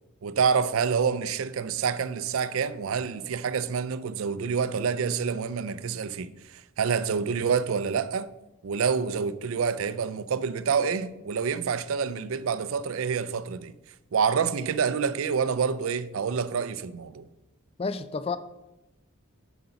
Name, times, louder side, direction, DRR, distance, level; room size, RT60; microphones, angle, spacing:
voice 1, 0.2-8.3 8.6-13.7 14.1-17.3, right 6 dB, 75° right, 0.4 m, -27 dB
voice 2, 17.8-18.4, left 4 dB, 25° left, 0.3 m, -30 dB
7.7 x 5.2 x 5.8 m
head